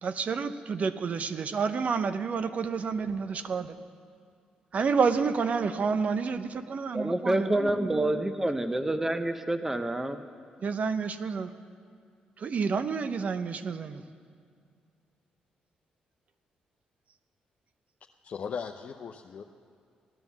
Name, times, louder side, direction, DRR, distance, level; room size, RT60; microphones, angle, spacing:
voice 1, 0.0-3.8 4.7-8.2 10.6-11.5 12.4-14.0, right 5 dB, 55° right, 11 dB, 0.7 m, -29 dB
voice 2, 6.9-10.2, right 1 dB, 15° right, 9 dB, 0.8 m, -28 dB
voice 3, 18.2-19.4, left 6 dB, 60° left, 3 dB, 0.6 m, -37 dB
16.0 x 10.5 x 7.2 m, 2.2 s
supercardioid pair, 60°, 3 cm